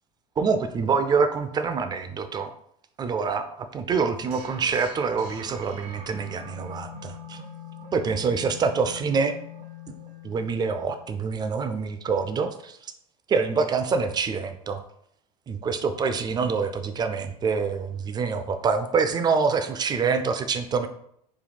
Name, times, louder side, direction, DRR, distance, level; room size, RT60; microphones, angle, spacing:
voice 1, 0.4-2.5 3.0-7.4 7.9-9.4 10.2-12.8 13.3-14.8 15.5-20.9, right 5 dB, 20° right, 9 dB, 0.3 m, -26 dB
sound 1, 4.3-11.2, left 3 dB, 75° right, 0.5 m, -43 dB
4.1 x 2.2 x 3.3 m, 0.70 s
figure-of-eight pair, 75°, 21 cm